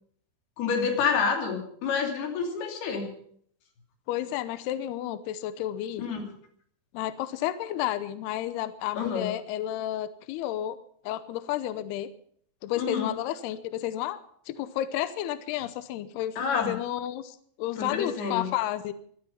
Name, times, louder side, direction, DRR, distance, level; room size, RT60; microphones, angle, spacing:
voice 1, 0.6-3.1 6.0-6.3 9.0-9.3 12.8-13.1 16.4-16.7 17.8-18.5, left 5 dB, 55° left, 2 dB, 4.5 m, -28 dB
voice 2, 4.1-6.1 6.9-10.8 11.0-12.1 12.6-14.2 14.5-18.9, left 12 dB, 85° left, 12 dB, 2.3 m, -31 dB
19.5 x 13.0 x 5.7 m, 0.62 s
omnidirectional pair, 5.7 m